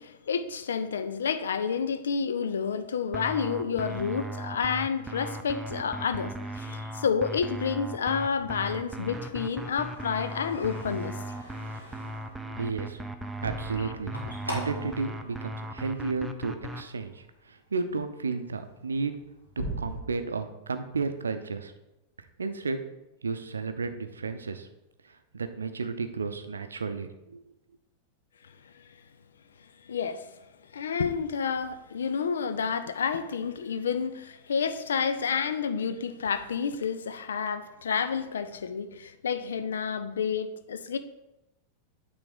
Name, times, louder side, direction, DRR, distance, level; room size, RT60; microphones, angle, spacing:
voice 1, 0.0-11.2 29.9-30.3 30.7-41.0, left 6 dB, 65° left, 0.5 m, -30 dB
sound 1, 3.1-16.8, right 1 dB, 10° right, 0.5 m, -37 dB
sound 2, 7.4-16.4 16.8-17.3 17.8-18.0 18.3-20.0, right 1 dB, 85° left, 2.0 m, -43 dB
voice 2, 12.6-13.0 13.4-14.1 14.4-19.1 19.8-21.7 22.4-22.8 23.2-24.7 25.3-27.4, right 4 dB, 75° right, 0.6 m, -32 dB
9.0 x 3.4 x 5.3 m
figure-of-eight pair, 90°, 0 cm